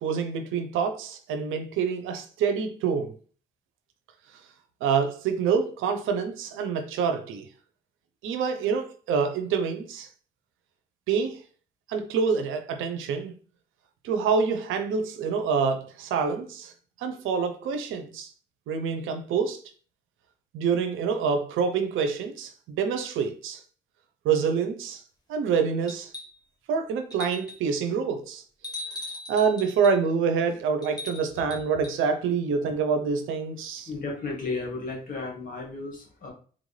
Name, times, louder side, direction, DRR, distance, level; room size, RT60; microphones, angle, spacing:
voice 1, 0.0-3.1 4.8-7.5 8.2-10.1 11.1-11.4 11.9-13.3 14.0-16.7 17.0-18.3 18.7-19.6 20.5-23.6 24.2-25.0 25.3-26.1 26.7-28.4 29.3-33.9, right 6 dB, 85° right, 0.6 m, -26 dB
sound 1, 25.9-26.5 27.1-27.7 28.6-30.0 30.8-32.0 33.6-33.7, left 2 dB, 20° left, 1.1 m, -40 dB
voice 2, 33.9-36.3, left 3 dB, 45° left, 1.6 m, -34 dB
4.1 x 2.5 x 3.1 m
cardioid pair, 90°, 20 cm